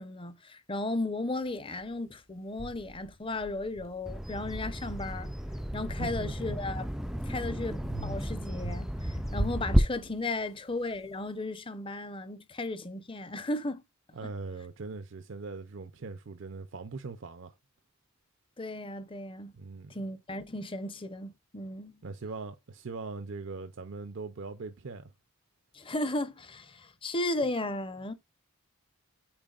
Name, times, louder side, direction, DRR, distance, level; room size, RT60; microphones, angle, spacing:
voice 1, 0.0-5.3 5.7-6.9 7.2-13.8 18.6-19.5 19.9-22.0 25.7-28.1, left 2 dB, 25° left, 0.8 m, -35 dB
sound 1, 1.8-1.9 2.6-4.4 4.9-7.2 7.8-10.6, right 1 dB, 70° left, 2.3 m, -41 dB
Bird vocalization bird call bird song, 4.1-9.8, equal, ahead, 0.4 m, -32 dB
voice 2, 6.0-6.6 14.1-17.5 19.5-19.9 22.0-25.1, right 4 dB, 60° right, 0.6 m, -41 dB
8.8 x 4.7 x 2.4 m
head